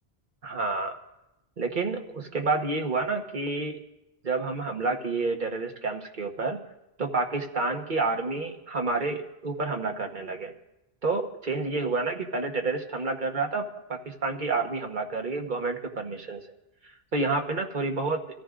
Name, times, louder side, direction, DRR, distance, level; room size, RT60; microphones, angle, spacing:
voice 1, 0.4-1.0 1.6-3.8 4.2-6.6 7.0-10.5 11.0-16.4 16.8-18.2, right 3 dB, 50° right, 3 dB, 1.4 m, -29 dB
25.0 x 14.0 x 2.5 m, 0.91 s
omnidirectional pair, 1.0 m